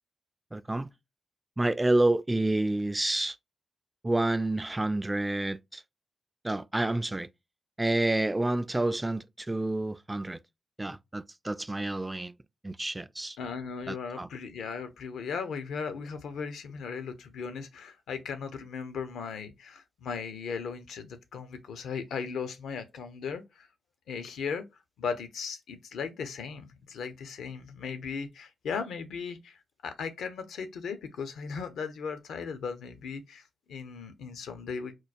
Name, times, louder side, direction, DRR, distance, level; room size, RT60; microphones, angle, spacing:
voice 1, 0.5-0.9 1.6-3.4 4.0-5.8 6.4-7.3 7.8-10.4 10.8-12.4 12.6-13.4 13.9-14.3, right 2 dB, 20° right, 0.3 m, -29 dB
voice 2, 13.4-23.7 24.1-24.6 25.0-34.9, left 5 dB, 80° left, 0.5 m, -37 dB
4.5 x 2.2 x 2.4 m
supercardioid pair, 45°, 0 cm